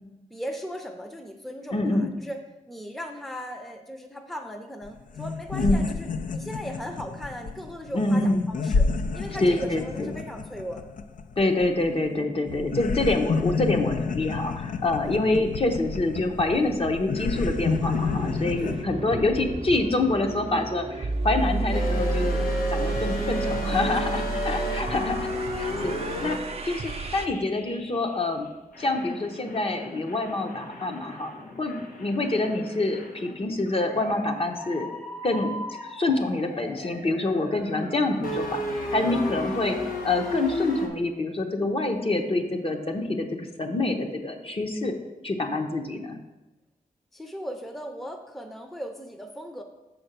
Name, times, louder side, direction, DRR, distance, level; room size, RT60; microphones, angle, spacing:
voice 1, 0.3-2.4 2.7-8.9 9.1-10.9 12.1-12.3 15.0-15.2 18.6-18.8 23.7-24.0 25.1-25.2 39.1-39.5 47.1-49.6, equal, ahead, 5 dB, 0.6 m, -38 dB
voice 2, 1.7-2.1 5.6-5.9 7.9-8.5 9.4-10.1 11.4-25.3 25.6-28.5 28.8-31.3 31.6-34.9 35.2-35.6 35.9-39.8 40.0-44.9 45.2-46.2, left 2 dB, 40° left, 4 dB, 0.9 m, -26 dB
sound 1, 4.8-4.9 5.1-12.2 12.5-18.8, left 4 dB, 70° left, 0.4 m, -30 dB
sound 2, 17.3-27.3, right 4 dB, 45° right, 0.5 m, -31 dB
sound 3, 21.7-28.3 28.7-40.9, left 2 dB, 85° left, 1.1 m, -34 dB
6.7 x 4.4 x 6.6 m, 1.0 s
wide cardioid pair, 100°, 14 cm